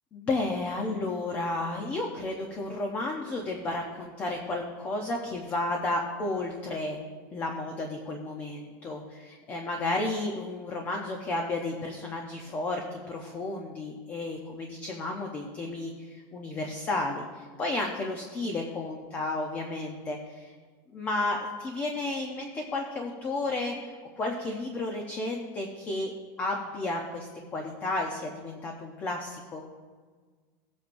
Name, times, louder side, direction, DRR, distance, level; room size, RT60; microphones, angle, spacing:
voice 1, 0.1-7.0 7.3-20.5 20.9-26.1 26.4-29.6, left 2 dB, 15° left, 2 dB, 0.7 m, -32 dB
18.0 x 8.5 x 2.6 m, 1.5 s
supercardioid pair, 180°, 10 cm